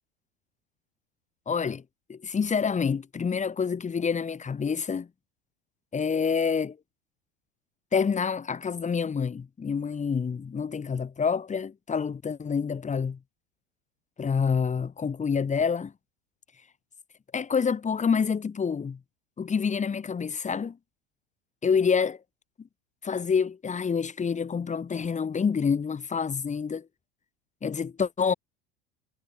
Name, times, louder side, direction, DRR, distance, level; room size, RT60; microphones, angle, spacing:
voice 1, 1.5-1.8 2.1-5.1 5.9-6.8 7.9-13.2 14.2-15.9 17.3-19.0 19.4-20.8 21.6-22.2 23.0-26.9 27.6-28.3, left 6 dB, 25° left, 5.9 m, -27 dB
hypercardioid pair, 80°, 30 cm